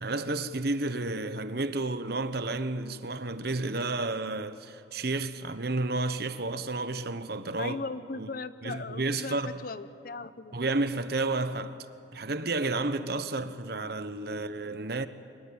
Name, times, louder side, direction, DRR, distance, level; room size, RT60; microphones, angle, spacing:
voice 1, 0.0-7.8 8.2-8.3 8.6-9.6 10.5-11.8 12.1-15.1, right 2 dB, 55° right, 1.1 m, -31 dB
voice 2, 7.6-10.6, left 3 dB, 50° left, 0.8 m, -38 dB
24.5 x 22.5 x 8.7 m
head